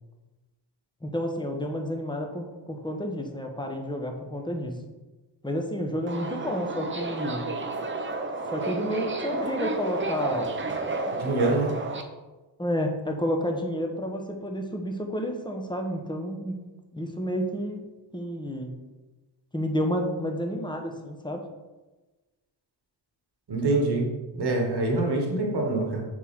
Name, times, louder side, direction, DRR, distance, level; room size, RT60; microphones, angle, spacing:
voice 1, 1.0-4.8 5.4-7.5 8.5-10.5 12.6-16.6 16.9-17.8 18.1-18.8 19.5-21.4, equal, 10° left, 3 dB, 1.0 m, -30 dB
Subway metro underground, 6.1-12.0, right 3 dB, 25° right, 0.7 m, -31 dB
voice 2, 11.1-11.7 23.5-24.1 24.3-26.1, right 2 dB, 60° right, 0 dB, 1.5 m, -25 dB
6.7 x 4.6 x 3.7 m, 1.2 s
cardioid pair, 70°, 45 cm